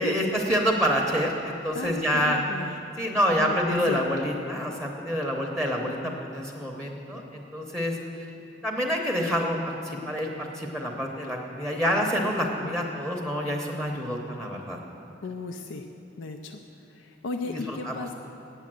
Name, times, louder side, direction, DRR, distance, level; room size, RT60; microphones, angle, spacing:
voice 1, 0.0-2.4 2.7-8.3 8.6-14.8 17.4-18.1, equal, 5° left, 1 dB, 0.8 m, -27 dB
voice 2, 1.7-2.8 3.4-4.0 5.9-6.2 12.6-12.8 15.2-15.9 16.2-16.6 16.9-18.1, left 3 dB, 80° left, 4 dB, 0.5 m, -35 dB
8.8 x 8.2 x 7.5 m, 2.9 s
head